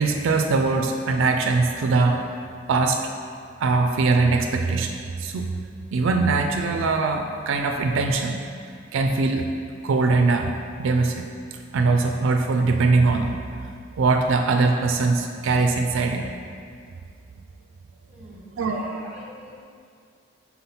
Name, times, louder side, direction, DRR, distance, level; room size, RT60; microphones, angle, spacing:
voice 1, 0.0-2.2 2.7-3.0 3.6-5.5 5.9-8.4 8.9-9.5 9.8-10.5 10.8-11.2 11.5-13.4 13.9-16.2 18.6-18.8, right 3 dB, 70° right, 4 dB, 0.4 m, -21 dB
voice 2, 18.1-19.6, equal, 5° right, -5 dB, 1.3 m, -43 dB
4.2 x 4.0 x 5.5 m, 2.3 s
head